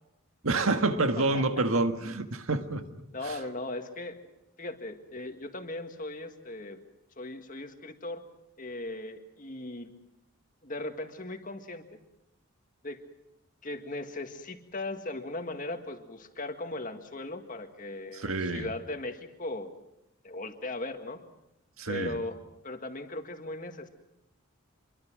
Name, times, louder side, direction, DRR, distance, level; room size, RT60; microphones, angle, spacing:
voice 1, 0.4-2.8 3.3-3.4 18.1-18.7 21.8-22.1, right 3 dB, 70° right, 1.7 m, -28 dB
voice 2, 1.2-1.7 3.1-4.2 4.6-6.8 7.2-8.2 8.6-9.9 10.6-11.8 12.8-13.0 13.6-19.7 20.2-21.2 21.9-22.4 22.6-23.9, left 2 dB, 35° left, 1.9 m, -38 dB
26.0 x 23.0 x 6.2 m
head